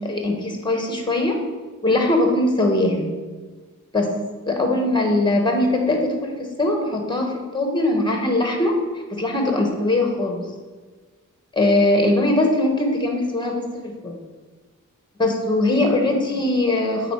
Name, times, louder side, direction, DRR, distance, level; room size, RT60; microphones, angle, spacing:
voice 1, 0.0-1.4 1.8-3.1 3.9-4.2 4.5-8.8 9.1-10.5 11.5-14.2 15.2-17.1, left 2 dB, 15° left, 2 dB, 1.6 m, -21 dB
7.8 x 4.9 x 4.9 m, 1.4 s
wide cardioid pair, 70°, 31 cm